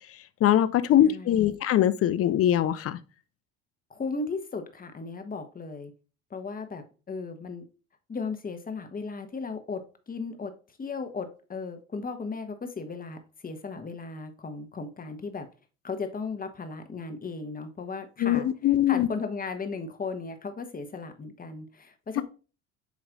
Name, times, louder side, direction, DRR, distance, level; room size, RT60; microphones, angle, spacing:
voice 1, 0.4-3.0 18.2-19.1 22.2-22.3, left 11 dB, 40° left, 0.6 m, -22 dB
voice 2, 1.0-1.6 3.9-5.9 6.3-7.6 8.1-9.8 10.1-10.5 10.8-15.5 15.8-22.2, left 4 dB, 25° left, 1.3 m, -36 dB
8.2 x 3.2 x 3.8 m
hypercardioid pair, 75°, 37 cm